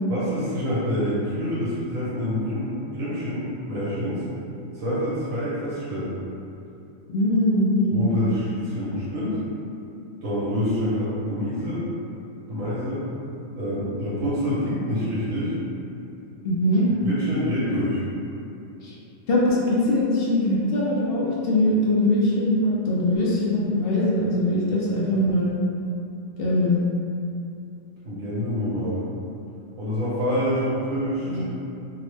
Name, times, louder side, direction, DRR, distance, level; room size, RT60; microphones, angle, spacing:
voice 1, 0.1-4.2 4.7-6.1 7.9-9.4 10.2-11.8 12.5-13.0 13.5-15.5 17.0-18.0 28.0-29.0 29.8-31.4, left 1 dB, 90° right, -10 dB, 1.1 m, -26 dB
voice 2, 7.1-8.0 16.4-16.9 19.3-25.5 26.4-26.8 31.2-31.4, left 1 dB, 65° left, -6 dB, 0.6 m, -22 dB
2.8 x 2.0 x 3.1 m, 2.7 s
omnidirectional pair, 1.4 m